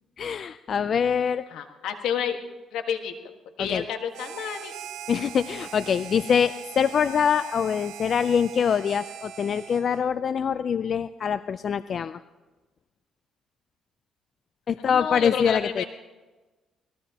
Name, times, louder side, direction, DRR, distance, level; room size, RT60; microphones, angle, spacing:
voice 1, 0.2-1.4 3.6-3.8 5.1-12.2 14.7-15.8, left 7 dB, 50° left, 13 dB, 0.4 m, -24 dB
voice 2, 1.5-2.4 2.7-3.1 3.6-4.7 14.8-15.9, left 8 dB, 80° left, 6 dB, 1.6 m, -30 dB
Harmonica, 4.1-10.1, right 10 dB, 80° right, 1.2 m, -41 dB
25.0 x 19.5 x 2.9 m, 1.2 s
cardioid pair, 90°, 0 cm